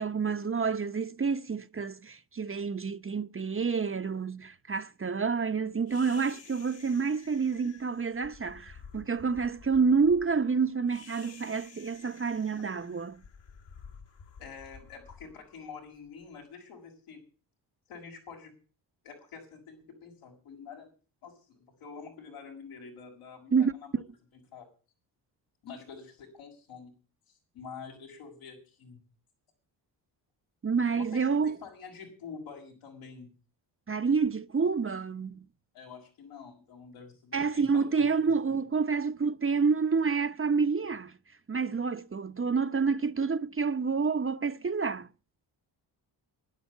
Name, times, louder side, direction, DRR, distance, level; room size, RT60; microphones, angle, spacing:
voice 1, 0.0-13.2 23.5-24.0 30.6-31.5 33.9-35.4 37.3-41.1 41.5-45.1, right 5 dB, 25° right, 0.9 m, -28 dB
sound 1, 5.9-16.2, left 6 dB, 60° left, 2.2 m, -52 dB
voice 2, 14.4-17.2 17.9-18.5 19.0-20.9 21.2-23.9 24.5-24.7 25.6-26.9 27.5-29.0 30.9-33.3 35.7-38.3, left 5 dB, 85° left, 6.9 m, -47 dB
11.5 x 11.0 x 8.3 m
supercardioid pair, 60°, 48 cm